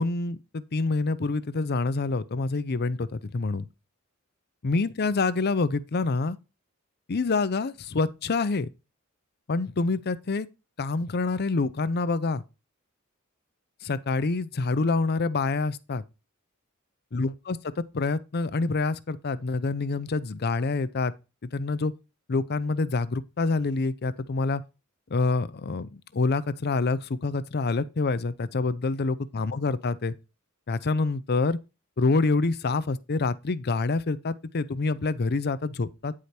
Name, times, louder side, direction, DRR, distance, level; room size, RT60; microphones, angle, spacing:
voice 1, 0.0-3.7 4.6-6.4 7.1-8.7 9.5-10.5 10.8-12.4 13.8-16.0 17.1-17.6 17.9-21.1 21.5-21.9 22.3-24.6 25.1-30.1 30.7-31.6 32.0-36.1, left 3 dB, 50° left, 0.6 m, -27 dB
9.4 x 5.0 x 4.3 m
head